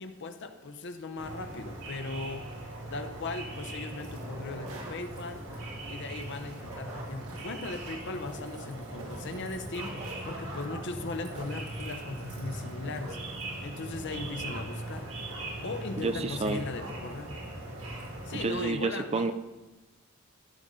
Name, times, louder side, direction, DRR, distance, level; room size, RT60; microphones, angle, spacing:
voice 1, 0.0-2.4 2.9-5.4 5.9-13.2 13.6-15.1 15.6-17.3 18.3-19.3, left 3 dB, 55° left, 8 dB, 0.7 m, -38 dB
sound 1, 1.2-18.7, right 1 dB, 60° right, 1.8 m, -40 dB
sound 2, 4.0-17.2 17.4-17.5 17.7-18.1, right 1 dB, 85° right, 1.8 m, -47 dB
voice 2, 16.0-16.6 18.3-19.3, right 3 dB, 25° right, 9 dB, 0.4 m, -30 dB
15.0 x 5.3 x 3.7 m, 1.1 s
head